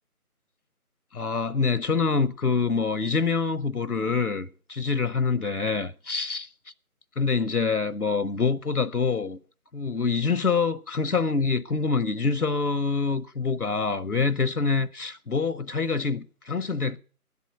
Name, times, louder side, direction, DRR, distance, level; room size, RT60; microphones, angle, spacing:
voice 1, 1.1-6.5 7.2-9.4 9.7-17.0, left 4 dB, 70° left, 1.0 m, -26 dB
10.5 x 8.3 x 8.8 m
figure-of-eight pair, 180°, 46 cm